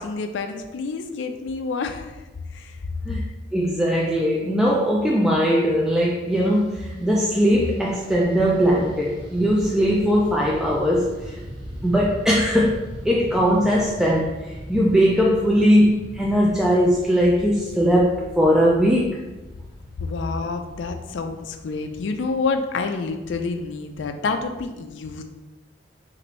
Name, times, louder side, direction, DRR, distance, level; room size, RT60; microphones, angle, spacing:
voice 1, 0.0-2.2 2.5-2.8 20.0-25.2, left 4 dB, 65° left, 6 dB, 0.4 m, -28 dB
voice 2, 3.5-11.3 11.8-19.2, equal, 5° right, -4 dB, 0.4 m, -20 dB
Fixed-wing aircraft airplane, 6.3-23.7, equal, 30° right, 1.3 m, -40 dB
5.8 x 2.6 x 3.1 m, 1.1 s
head